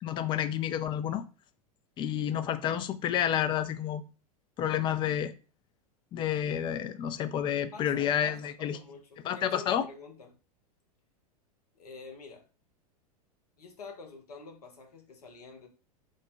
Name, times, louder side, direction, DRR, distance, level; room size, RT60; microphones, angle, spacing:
voice 1, 0.0-1.2 2.0-4.0 4.6-5.3 6.1-8.8 9.2-9.9, left 10 dB, 25° left, 0.3 m, -30 dB
voice 2, 7.7-10.4 11.7-12.4 13.6-15.7, left 4 dB, 75° left, 1.0 m, -48 dB
3.1 x 2.2 x 4.2 m
figure-of-eight pair, 90°, 20 cm